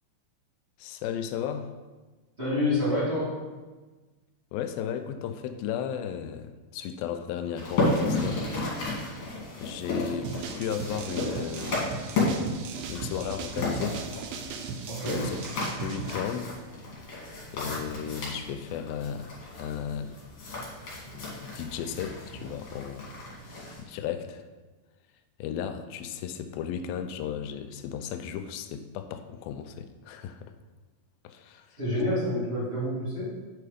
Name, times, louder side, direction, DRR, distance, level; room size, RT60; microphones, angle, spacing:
voice 1, 0.8-1.7 4.5-8.4 9.6-12.0 12.9-14.0 15.0-15.4 15.8-16.6 17.5-20.1 21.1-23.1 23.5-24.4 25.4-30.5 31.2-31.7, left 8 dB, 85° left, 9 dB, 2.4 m, -35 dB
voice 2, 2.4-3.4 14.9-15.3 31.8-33.3, left 1 dB, 20° right, -10 dB, 2.2 m, -28 dB
sound 1, 7.6-23.8, left 2 dB, 45° left, 2.7 m, -33 dB
sound 2, 10.2-16.2, right 5 dB, 80° right, 1.8 m, -37 dB
8.3 x 4.7 x 5.0 m, 1.3 s
omnidirectional pair, 4.1 m